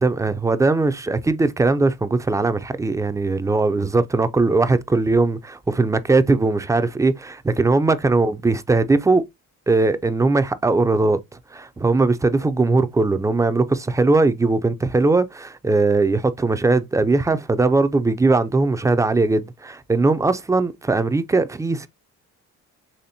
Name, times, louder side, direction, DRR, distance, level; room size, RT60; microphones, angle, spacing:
voice 1, 0.0-9.2 9.7-11.2 11.5-21.9, right 3 dB, 10° right, 0.3 m, -19 dB
4.3 x 3.1 x 2.7 m
supercardioid pair, 75°, 38 cm